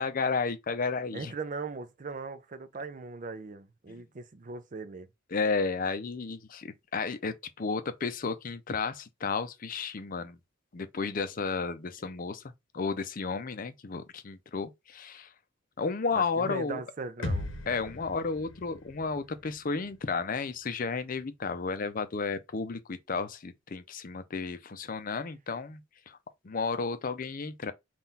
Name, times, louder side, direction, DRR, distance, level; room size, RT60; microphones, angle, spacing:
voice 1, 0.0-1.3 3.9-4.0 5.3-10.4 10.7-15.3 15.8-16.8 17.7-25.8 26.1-26.2 26.4-27.7, left 4 dB, 45° left, 0.5 m, -32 dB
voice 2, 1.1-5.1 16.2-17.5, right 4 dB, 40° right, 0.5 m, -39 dB
sound 1, 17.2-21.1, left 2 dB, 80° left, 0.8 m, -39 dB
3.8 x 2.4 x 4.0 m
head